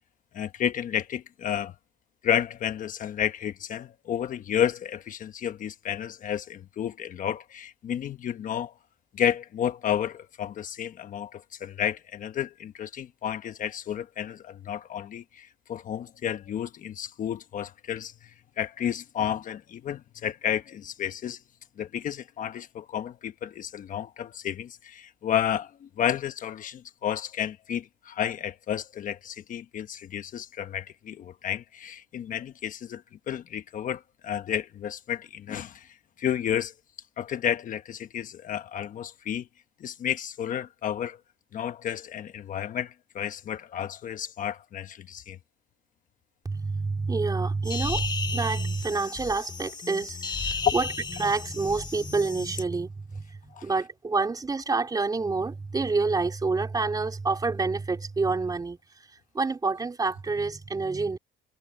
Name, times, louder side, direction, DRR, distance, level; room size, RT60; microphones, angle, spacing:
voice 1, 0.3-1.7 2.2-8.7 9.1-21.4 21.8-36.7 37.2-39.5 39.8-41.2 41.5-45.4 50.6-50.7 53.5-53.7, left 9 dB, 50° left, 1.2 m, -31 dB
voice 2, 46.4-50.9 51.2-58.8 59.3-61.2, right 3 dB, 20° right, 3.8 m, -28 dB
sound 1, 47.6-52.6, left 4 dB, 25° left, 2.2 m, -34 dB
cardioid pair, 110°, 17 cm